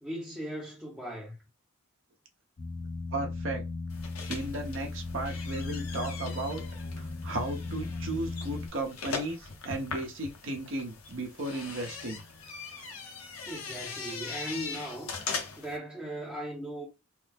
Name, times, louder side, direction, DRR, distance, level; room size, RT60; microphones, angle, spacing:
voice 1, 0.0-1.4 13.5-15.1 15.6-16.9, right 1 dB, 5° right, 0.7 m, -38 dB
sound 1, 2.6-8.7, left 3 dB, 40° left, 0.8 m, -37 dB
voice 2, 3.1-3.6 4.3-6.6 7.0-12.2, right 2 dB, 60° right, 0.7 m, -35 dB
sound 2, 3.9-15.8, left 4 dB, 85° left, 0.8 m, -40 dB
3.1 x 2.0 x 3.3 m
head